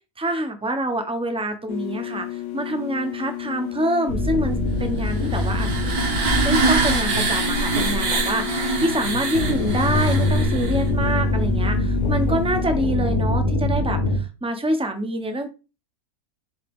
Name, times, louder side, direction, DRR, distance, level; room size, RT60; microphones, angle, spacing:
voice 1, 0.2-5.7 6.4-15.5, right 1 dB, 5° right, 6 dB, 0.5 m, -26 dB
sound 1, 1.7-12.8, left 16 dB, 55° left, 1.2 m, -32 dB
sound 2, 4.1-8.4 9.3-14.2, left 1 dB, 80° left, 2.4 m, -24 dB
sound 3, 5.0-10.9, right 3 dB, 75° right, 1.8 m, -24 dB
8.1 x 3.5 x 3.6 m, 0.31 s
omnidirectional pair, 1.6 m